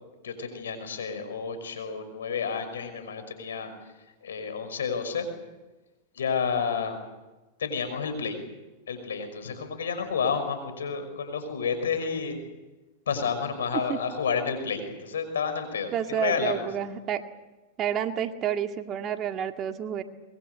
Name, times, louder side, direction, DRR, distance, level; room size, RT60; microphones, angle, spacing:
voice 1, 0.2-3.7 4.2-5.3 6.2-7.0 7.6-8.4 8.9-12.4 13.1-16.7, left 6 dB, 85° left, 9 dB, 5.7 m, -30 dB
voice 2, 15.9-17.2 17.8-20.0, right 9 dB, 35° right, 6 dB, 2.0 m, -29 dB
23.5 x 22.0 x 8.2 m, 1.1 s
hypercardioid pair, 110°, 0 cm